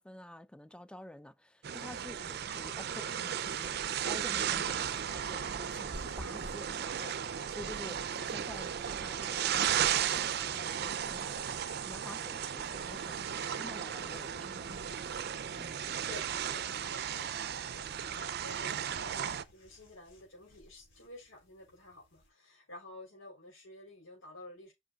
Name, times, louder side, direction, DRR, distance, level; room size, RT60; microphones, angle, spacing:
voice 1, 0.0-7.2 7.5-11.6 11.8-15.3 15.6-16.0, left 1 dB, 5° left, 0.5 m, -49 dB
sound 1, 1.6-19.4, right 8 dB, 55° right, 0.5 m, -35 dB
sound 2, 5.9-22.3, equal, 65° left, 3.6 m, -57 dB
voice 2, 16.1-24.7, left 2 dB, 80° left, 3.9 m, -51 dB
9.6 x 5.6 x 2.4 m
head